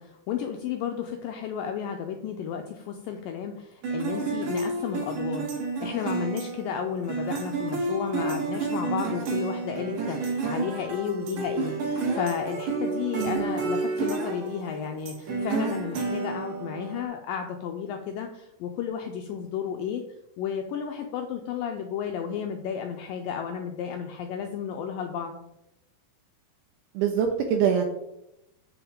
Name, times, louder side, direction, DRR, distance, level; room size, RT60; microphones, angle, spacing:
voice 1, 0.0-5.5 5.8-20.0 20.4-25.4, left 7 dB, 85° left, 4 dB, 2.0 m, -33 dB
sound 1, 3.8-17.0, right 3 dB, 60° right, 2.3 m, -30 dB
voice 2, 27.0-27.8, right 8 dB, 80° right, 3 dB, 2.6 m, -24 dB
7.8 x 7.0 x 3.6 m, 0.87 s
omnidirectional pair, 4.6 m